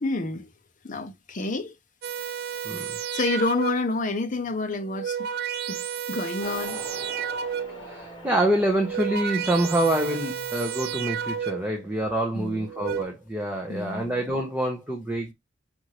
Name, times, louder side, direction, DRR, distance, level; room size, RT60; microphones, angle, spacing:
voice 1, 0.0-0.5 0.8-1.7 3.1-5.3 5.7-6.8 12.3-12.7 13.7-14.0, left 3 dB, 40° left, 0.7 m, -29 dB
sound 1, 2.0-4.0 4.8-7.9 8.7-11.8 12.6-13.0, right 8 dB, 50° right, 0.3 m, -32 dB
voice 2, 2.6-3.0 7.8-15.3, right 1 dB, 10° right, 0.8 m, -26 dB
Motorcycle, 6.4-11.4, left 1 dB, 25° left, 1.1 m, -43 dB
5.5 x 2.6 x 3.1 m
head